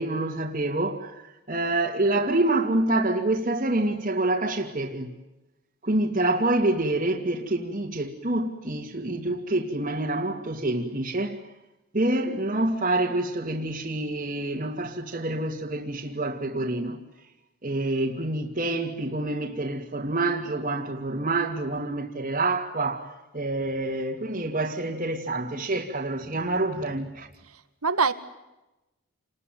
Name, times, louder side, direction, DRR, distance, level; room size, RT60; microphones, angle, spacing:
voice 1, 0.0-5.1 5.8-11.4 11.9-17.0 17.6-23.1 23.3-27.3, right 2 dB, 35° right, 2.6 m, -27 dB
voice 2, 27.4-28.1, right 5 dB, 85° right, 2.0 m, -25 dB
29.0 x 21.0 x 9.4 m
head